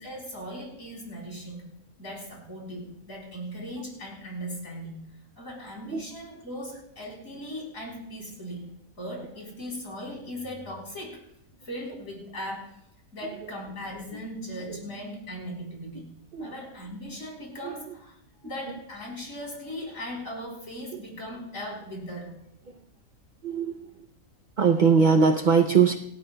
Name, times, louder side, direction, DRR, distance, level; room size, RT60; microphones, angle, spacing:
voice 1, 0.0-1.7 2.0-5.0 5.4-8.7 9.0-11.2 11.6-12.8 13.1-16.1 16.4-22.3, equal, 65° left, -3 dB, 4.3 m, -38 dB
voice 2, 23.4-24.1 24.6-26.0, right 5 dB, 50° right, 5 dB, 0.5 m, -21 dB
28.0 x 12.5 x 2.3 m, 0.75 s
omnidirectional pair, 1.5 m